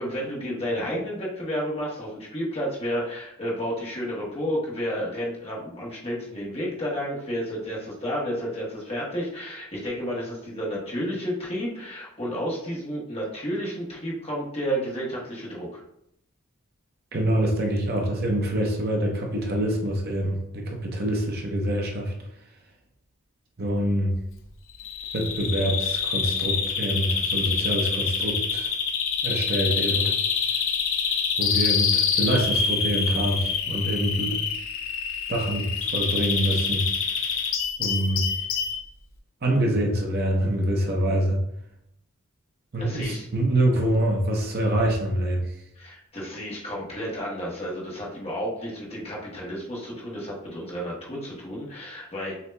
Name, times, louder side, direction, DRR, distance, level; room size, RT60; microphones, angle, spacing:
voice 1, 0.0-15.8 42.8-43.3 45.8-52.3, equal, 25° left, -4 dB, 1.1 m, -31 dB
voice 2, 17.1-22.1 23.6-24.1 25.1-28.7 29.2-30.1 31.4-34.4 35.3-37.3 37.8-38.2 39.4-41.4 42.7-45.6, right 1 dB, 45° right, 0 dB, 0.7 m, -25 dB
Bird vocalization bird call bird song, 24.8-38.8, left 6 dB, 60° left, 0.6 m, -26 dB
6.6 x 2.7 x 2.2 m, 0.78 s
head